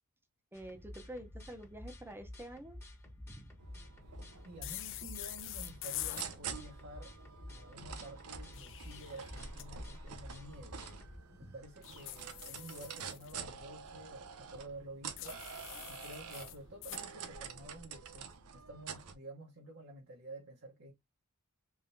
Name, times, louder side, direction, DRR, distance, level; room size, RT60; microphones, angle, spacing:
sound 1, 0.5-11.2, left 1 dB, 10° left, 1.2 m, -51 dB
voice 1, 0.5-2.8 3.2-3.6 11.3-11.5, right 1 dB, 10° right, 0.8 m, -48 dB
sound 2, 3.6-19.1, right 6 dB, 75° right, 0.7 m, -48 dB
voice 2, 4.4-7.1 7.5-10.9 11.4-15.4 15.9-20.9, right 2 dB, 55° right, 1.1 m, -51 dB
sound 3, 4.6-6.3 8.3-9.7 11.8-13.3 15.2-17.0, left 16 dB, 60° left, 0.4 m, -45 dB
3.6 x 3.3 x 2.7 m
head